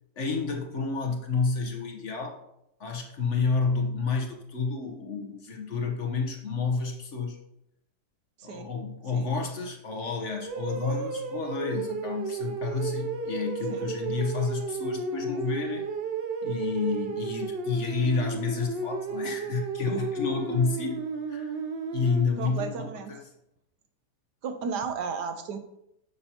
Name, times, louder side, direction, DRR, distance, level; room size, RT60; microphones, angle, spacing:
voice 1, 0.2-2.4 2.8-7.4 8.4-16.0 16.4-21.5 21.9-23.2, left 4 dB, 50° left, 2 dB, 1.2 m, -30 dB
sound 1, 10.4-22.2, right 4 dB, 60° right, 0.6 m, -33 dB
voice 2, 22.4-23.1 24.4-25.6, right 5 dB, 85° right, 8 dB, 1.5 m, -34 dB
9.7 x 6.9 x 2.9 m, 0.82 s
omnidirectional pair, 1.8 m